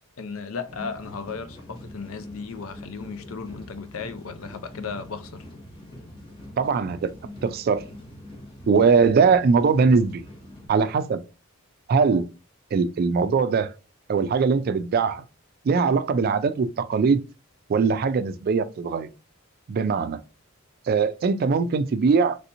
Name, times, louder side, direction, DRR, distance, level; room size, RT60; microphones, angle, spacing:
voice 1, 0.2-5.4, left 5 dB, 80° left, 0.5 m, -35 dB
sound 1, 0.7-10.7, left 1 dB, 25° left, 0.9 m, -43 dB
voice 2, 6.6-7.1 7.4-7.8 8.7-10.2 10.7-11.2 11.9-12.3 12.7-13.7 14.1-15.2 15.6-17.2 17.7-19.1 19.7-20.2 20.9-22.4, right 5 dB, 45° right, 0.3 m, -21 dB
3.3 x 2.8 x 2.6 m
head